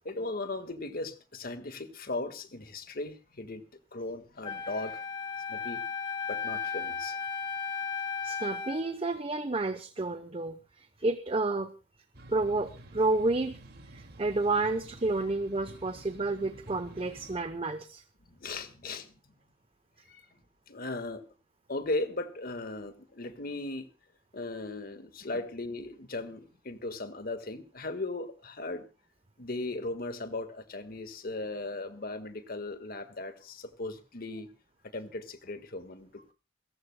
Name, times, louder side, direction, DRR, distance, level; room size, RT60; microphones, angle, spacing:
voice 1, 0.1-3.6 3.9-5.0 5.5-5.9 6.3-7.2 18.4-19.3 20.1-20.2 20.7-21.2 21.7-23.9 24.3-28.8 29.4-34.5 34.9-36.3, left 2 dB, 55° left, 9 dB, 1.6 m, -37 dB
Wind instrument woodwind instrument, 4.4-8.9, left 6 dB, 25° left, 2.0 m, -35 dB
voice 2, 8.2-10.6 11.0-11.7 12.3-13.6 13.9-18.0, right 2 dB, 30° right, 10 dB, 0.8 m, -30 dB
sound 1, 12.1-17.4, right 1 dB, 60° right, 2.2 m, -50 dB
28.0 x 14.5 x 2.2 m, 0.31 s
head